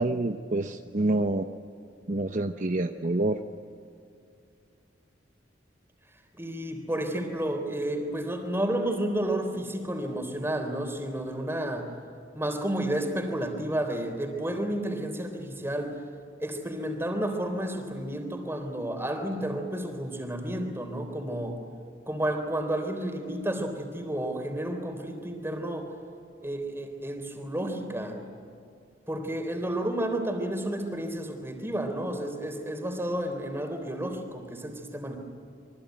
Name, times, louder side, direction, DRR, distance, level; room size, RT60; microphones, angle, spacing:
voice 1, 0.0-1.5 2.1-3.4, right 2 dB, 45° right, 6 dB, 0.8 m, -27 dB
voice 2, 6.4-11.9 12.3-15.9 16.4-21.6 22.1-25.9 26.4-28.2 29.1-35.2, right 1 dB, 15° right, 5 dB, 3.6 m, -31 dB
27.5 x 23.5 x 9.2 m, 2.6 s
head